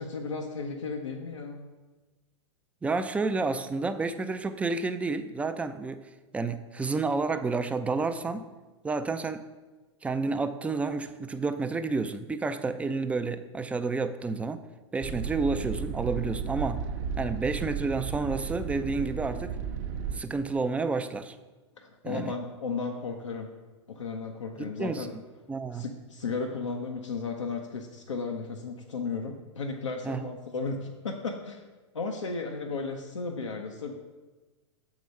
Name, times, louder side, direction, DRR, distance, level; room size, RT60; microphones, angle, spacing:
voice 1, 0.0-1.7 21.8-23.5 23.9-25.1 25.7-31.6 31.9-33.9, left 4 dB, 85° left, 1 dB, 0.7 m, -34 dB
voice 2, 2.8-6.0 6.3-8.5 8.8-9.4 10.0-14.6 14.9-16.8 17.2-19.6 20.1-21.3 22.0-22.3 24.6-25.1 25.5-25.8 30.0-30.3, right 3 dB, 10° right, 10 dB, 0.3 m, -30 dB
sound 1, 15.0-20.2, right 7 dB, 40° right, 0.7 m, -34 dB
6.7 x 4.8 x 5.3 m, 1.2 s
hypercardioid pair, 100°, 15 cm